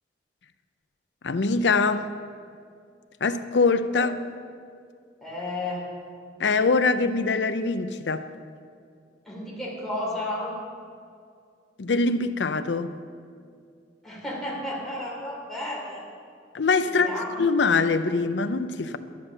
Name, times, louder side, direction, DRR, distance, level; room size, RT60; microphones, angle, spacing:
voice 1, 1.2-2.1 3.2-4.2 6.4-8.3 11.8-13.0 16.5-19.0, left 4 dB, 75° left, 0.6 m, -23 dB
voice 2, 5.2-5.9 9.2-10.6 14.0-16.1 16.8-17.3, left 1 dB, ahead, 3.0 m, -32 dB
11.0 x 10.0 x 6.5 m
head